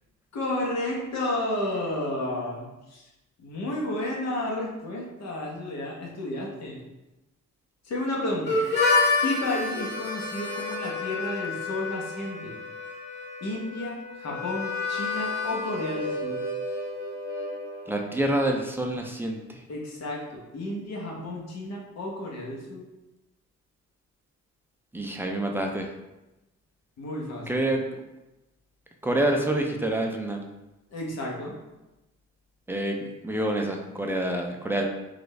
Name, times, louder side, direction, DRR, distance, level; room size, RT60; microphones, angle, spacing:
voice 1, 0.3-3.0 3.4-6.8 7.8-8.6 9.2-12.5 13.4-16.4 19.7-22.8 27.0-27.6 30.9-31.6, left 1 dB, 60° left, -2 dB, 1.0 m, -32 dB
Harmonica, 8.5-18.1, left 3 dB, 35° left, 1.4 m, -29 dB
voice 2, 17.9-19.6 24.9-25.9 27.5-27.8 29.0-30.4 32.7-34.9, right 1 dB, 5° right, 2 dB, 0.4 m, -27 dB
3.7 x 2.4 x 3.2 m, 0.99 s
cardioid pair, 90°, 30 cm